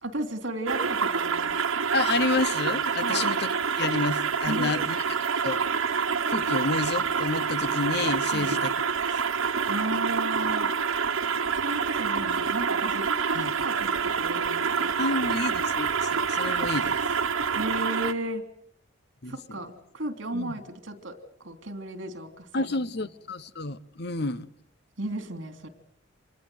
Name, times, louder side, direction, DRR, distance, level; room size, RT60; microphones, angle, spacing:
voice 1, 0.0-1.5 3.0-3.3 4.5-5.0 8.3-8.5 9.7-10.7 11.5-14.9 17.5-18.4 19.2-21.2 21.4-22.5 25.0-25.7, right 1 dB, 65° right, 3.2 m, -34 dB
sound 1, 0.7-18.1, right 6 dB, 90° right, 1.4 m, -27 dB
voice 2, 1.9-4.9 5.4-5.6 6.3-8.7 13.3-13.5 15.0-17.0 19.2-19.6 20.3-20.5 22.5-24.5, left 3 dB, 50° left, 0.9 m, -30 dB
26.5 x 20.0 x 8.0 m
head